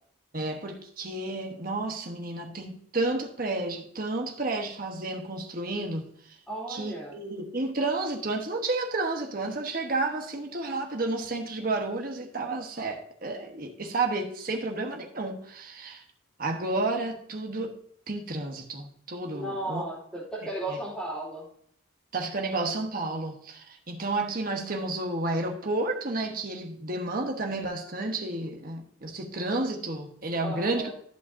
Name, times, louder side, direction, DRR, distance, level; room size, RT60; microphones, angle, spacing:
voice 1, 0.3-6.4 6.7-16.0 16.4-17.7 18.1-19.8 20.4-20.8 22.1-30.9, right 2 dB, 45° right, 1.2 m, -31 dB
voice 2, 6.5-7.2 19.3-21.5 30.4-30.9, right 1 dB, 5° left, 3.0 m, -35 dB
13.5 x 5.7 x 2.7 m
head